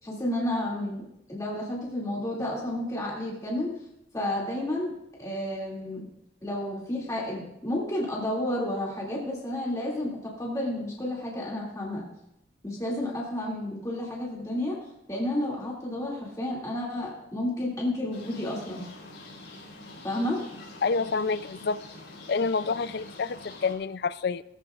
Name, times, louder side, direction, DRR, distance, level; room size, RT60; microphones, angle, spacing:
voice 1, 0.0-3.8 4.1-4.9 5.2-6.1 6.4-12.1 12.6-14.8 15.1-18.9 20.0-20.4, left 1 dB, 15° left, -5 dB, 2.4 m, -31 dB
sound 1, 18.1-23.7, left 2 dB, 80° left, 4.1 m, -45 dB
voice 2, 20.8-21.8 22.3-24.4, left 4 dB, 55° left, 16 dB, 0.4 m, -28 dB
19.0 x 14.0 x 2.4 m, 0.81 s
head